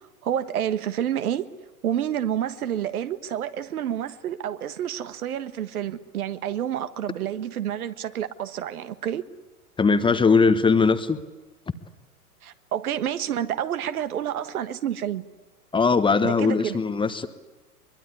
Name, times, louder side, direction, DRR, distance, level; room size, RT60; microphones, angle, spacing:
voice 1, 0.2-1.5 1.8-9.2 12.4-15.2 16.2-16.8, right 10 dB, 70° right, 1.5 m, -29 dB
voice 2, 9.8-11.2 15.7-17.3, left 4 dB, 10° left, 1.1 m, -20 dB
23.0 x 22.5 x 9.7 m
hypercardioid pair, 110°, 46 cm